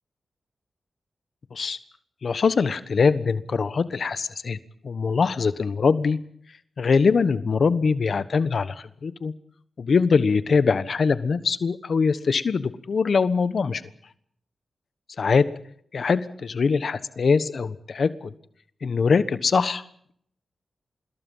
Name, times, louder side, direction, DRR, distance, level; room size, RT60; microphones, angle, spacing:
voice 1, 2.2-4.6 4.8-6.2 6.8-9.3 9.8-13.8 15.2-15.5 15.9-18.3 18.8-19.8, left 5 dB, 65° left, 13 dB, 1.2 m, -22 dB
26.0 x 21.5 x 5.6 m, 0.65 s
cardioid pair, 55°, 0 cm